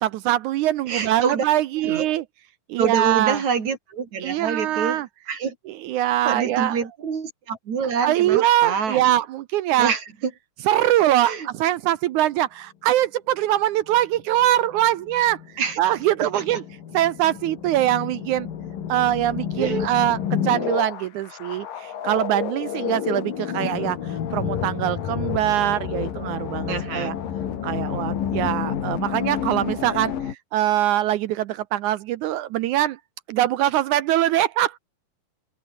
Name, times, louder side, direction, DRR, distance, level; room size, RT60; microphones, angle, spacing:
voice 1, 0.0-2.2 2.7-3.4 4.2-5.1 5.7-6.8 8.0-9.9 10.7-15.4 15.8-16.6 16.9-18.5 18.9-27.1 27.6-33.0 33.3-34.8, right 13 dB, 80° right, 1.8 m, -23 dB
voice 2, 0.9-1.4 1.8-2.1 2.8-5.0 5.3-5.5 6.2-9.0 9.8-10.0 11.2-11.5 15.6-15.8 16.3-16.4 19.6-19.9 26.7-27.2, right 6 dB, 50° right, 4.6 m, -26 dB
sound 1, 13.9-30.3, left 9 dB, 70° left, 4.0 m, -30 dB
open air
omnidirectional pair, 4.2 m